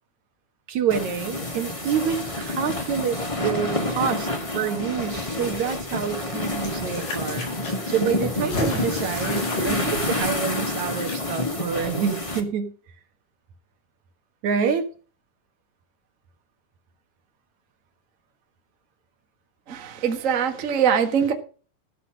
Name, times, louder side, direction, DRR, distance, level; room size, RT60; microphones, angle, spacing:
voice 1, 0.7-7.5 7.9-12.7 14.4-14.9, right 7 dB, 65° right, 2.6 m, -27 dB
sound 1, 0.9-12.4, left 2 dB, 15° left, 1.2 m, -28 dB
sound 2, 6.3-11.2 11.4-11.5, left 1 dB, 75° left, 6.3 m, -33 dB
voice 2, 19.7-21.3, right 7 dB, 35° right, 1.5 m, -22 dB
14.5 x 6.9 x 6.3 m
omnidirectional pair, 3.7 m